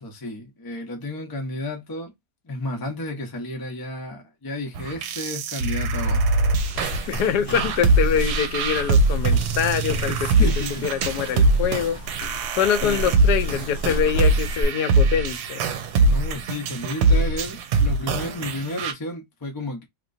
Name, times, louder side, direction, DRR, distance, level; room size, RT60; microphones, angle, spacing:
voice 1, 0.0-2.1 2.4-6.4 7.4-7.6 10.1-10.9 12.8-13.1 16.1-19.9, left 1 dB, 25° left, 0.5 m, -32 dB
sound 1, 4.8-18.9, right 2 dB, 80° right, 1.1 m, -22 dB
sound 2, 6.6-14.6, equal, 55° left, 1.0 m, -33 dB
voice 2, 7.1-10.2 10.8-12.0 12.5-15.7, left 8 dB, 80° left, 1.2 m, -24 dB
2.9 x 2.9 x 2.6 m
omnidirectional pair, 1.7 m